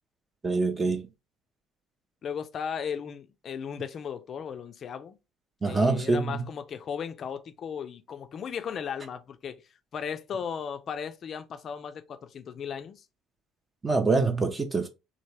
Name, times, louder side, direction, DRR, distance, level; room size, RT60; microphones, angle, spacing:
voice 1, 0.4-1.1 5.6-6.5 13.8-14.9, right 3 dB, 25° right, 0.5 m, -25 dB
voice 2, 2.2-5.2 5.6-9.6 9.9-13.0, left 7 dB, 45° left, 0.4 m, -36 dB
3.1 x 2.1 x 3.1 m
figure-of-eight pair, 55°, 0 cm